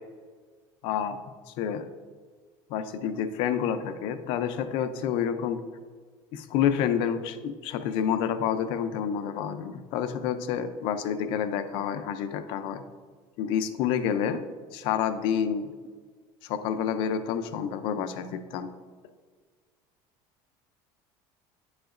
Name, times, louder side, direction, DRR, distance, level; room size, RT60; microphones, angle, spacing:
voice 1, 0.8-1.2 1.6-1.9 2.7-5.6 6.3-12.8 13.4-14.4 14.7-15.7 16.5-18.7, left 8 dB, 60° left, 10 dB, 0.5 m, -28 dB
10.0 x 4.9 x 2.5 m, 1.5 s
cardioid pair, 165°, 10 cm